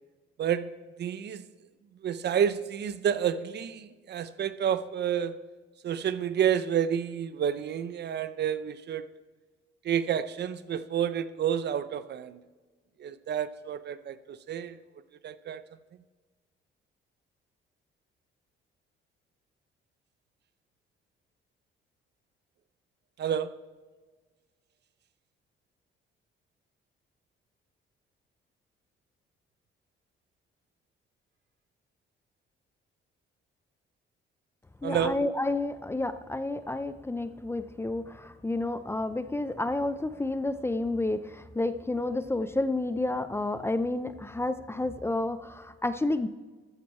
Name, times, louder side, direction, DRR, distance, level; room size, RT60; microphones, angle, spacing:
voice 1, 1.0-1.5 2.0-5.3 5.8-9.0 9.8-12.4 13.0-14.8 15.2-15.6 23.2-23.5 34.8-35.2, right 9 dB, 55° right, 14 dB, 0.6 m, -29 dB
voice 2, 34.8-46.3, left 2 dB, 10° left, 12 dB, 0.4 m, -30 dB
13.5 x 9.2 x 4.3 m, 1.4 s
cardioid pair, 115°, 21 cm